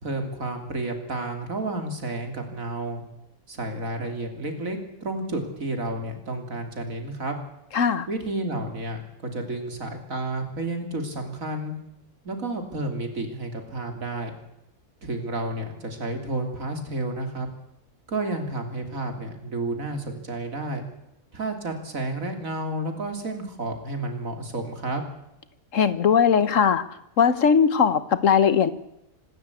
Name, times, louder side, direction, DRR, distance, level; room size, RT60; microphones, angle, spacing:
voice 1, 0.0-3.0 3.5-7.4 8.1-11.7 12.3-14.3 15.0-17.5 18.1-20.9 21.3-25.0, right 2 dB, 70° right, 5 dB, 3.6 m, -31 dB
voice 2, 7.7-8.1 25.7-26.8 27.2-28.7, left 7 dB, 65° left, 15 dB, 1.5 m, -19 dB
25.5 x 13.0 x 8.4 m, 0.86 s
omnidirectional pair, 1.5 m